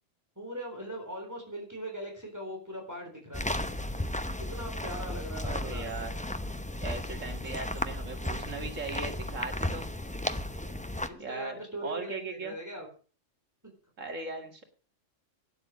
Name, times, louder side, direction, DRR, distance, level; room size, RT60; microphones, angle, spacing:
voice 1, 0.4-3.6 4.5-6.1 11.1-12.9 13.6-13.7, equal, 15° right, 1 dB, 3.9 m, -40 dB
sound 1, 3.3-11.1, left 1 dB, 10° left, 0.6 m, -34 dB
voice 2, 5.4-6.1 6.8-9.9 11.2-12.5 14.0-14.6, right 3 dB, 80° right, 5 dB, 2.5 m, -38 dB
12.5 x 9.8 x 6.3 m, 0.39 s
omnidirectional pair, 1.3 m